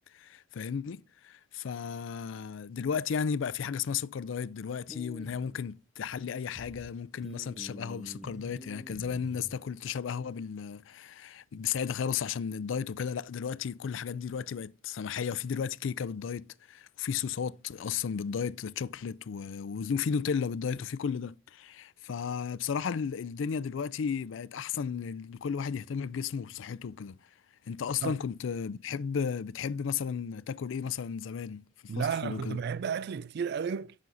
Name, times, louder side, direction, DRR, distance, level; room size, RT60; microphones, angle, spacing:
voice 1, 0.1-27.2 27.7-32.6, left 6 dB, 65° left, 0.4 m, -34 dB
sound 1, 4.9-5.6 6.5-6.9 7.2-9.6, equal, ahead, 0.5 m, -46 dB
voice 2, 31.9-33.9, right 6 dB, 55° right, 0.3 m, -32 dB
15.0 x 6.2 x 2.6 m
head